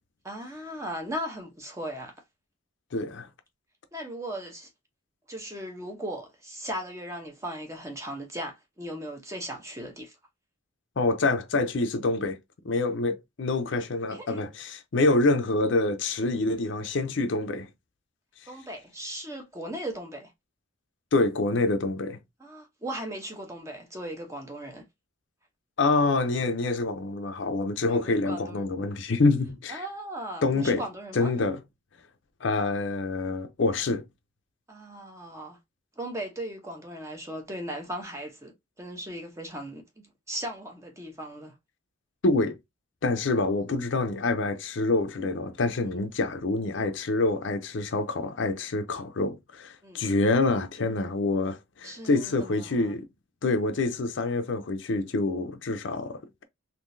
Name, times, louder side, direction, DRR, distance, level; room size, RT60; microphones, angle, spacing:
voice 1, 0.2-2.2 3.9-4.7 5.3-10.2 14.1-14.4 18.5-20.3 22.4-24.9 27.9-28.7 29.7-31.3 34.7-35.6 36.0-41.6 45.8-46.0 49.8-50.0 51.8-52.9, right 1 dB, 15° right, 0.7 m, -37 dB
voice 2, 2.9-3.3 11.0-12.4 12.6-17.7 21.1-22.2 25.8-29.8 30.4-30.8 31.2-31.6 32.4-34.0 42.2-42.6 43.0-53.0 53.4-56.4, left 3 dB, 65° left, 0.5 m, -26 dB
3.7 x 2.7 x 2.5 m
head